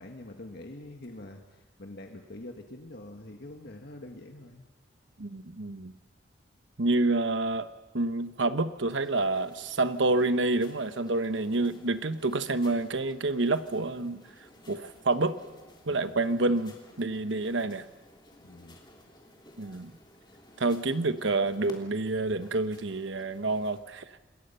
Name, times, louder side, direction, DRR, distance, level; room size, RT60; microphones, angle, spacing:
voice 1, 0.0-4.7 15.8-16.2 18.4-18.8, left 1 dB, 60° left, 3 dB, 1.6 m, -45 dB
voice 2, 5.2-5.9 6.8-7.7 7.9-14.2 14.7-15.4 15.9-17.9 19.6-19.9 20.6-24.0, right 2 dB, 75° right, 11 dB, 1.1 m, -28 dB
sound 1, 8.9-23.8, left 1 dB, 25° left, 3.4 m, -55 dB
27.0 x 21.0 x 5.6 m, 1.2 s
head